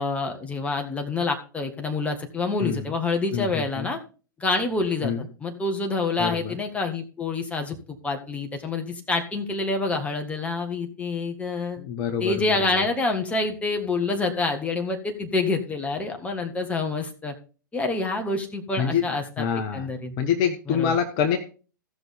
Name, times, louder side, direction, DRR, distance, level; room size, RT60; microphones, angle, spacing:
voice 1, 0.0-4.0 4.4-5.1 5.4-7.8 8.0-11.8 12.2-17.3 17.7-19.4 19.7-20.1 20.7-20.9, left 3 dB, 10° left, 3 dB, 1.6 m, -27 dB
voice 2, 2.6-2.9 3.3-3.9 5.0-5.3 6.2-6.6 11.8-12.8 18.8-19.9 20.2-21.4, left 7 dB, 40° left, 6 dB, 1.2 m, -26 dB
16.0 x 6.2 x 3.5 m, 0.36 s
figure-of-eight pair, 105°, 11 cm